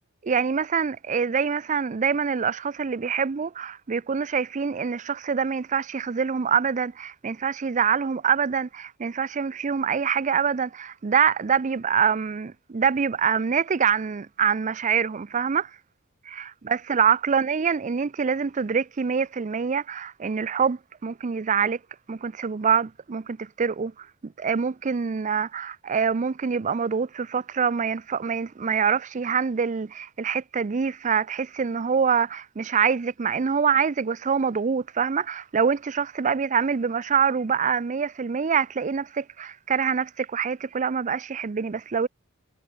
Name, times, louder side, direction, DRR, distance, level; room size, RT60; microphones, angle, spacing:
voice 1, 0.2-15.7 16.3-21.8 22.1-42.1, right 6 dB, 35° right, 0.4 m, -25 dB
head